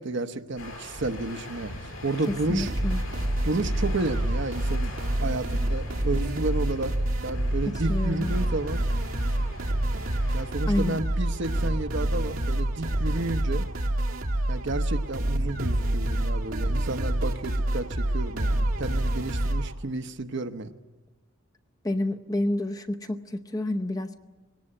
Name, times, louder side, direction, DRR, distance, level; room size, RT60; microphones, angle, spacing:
voice 1, 0.0-2.7 3.4-7.0 7.2-8.8 10.3-13.7 14.5-20.7, right 2 dB, 65° right, 8 dB, 1.0 m, -31 dB
sound 1, 0.6-10.5, left 1 dB, 75° left, 6.9 m, -42 dB
voice 2, 2.5-3.0 7.7-8.3 10.7-11.0 21.8-24.2, left 1 dB, 20° left, 6 dB, 0.8 m, -29 dB
sound 2, 2.6-19.7, right 1 dB, 80° right, 1.6 m, -27 dB
22.0 x 18.0 x 8.8 m, 1.2 s
head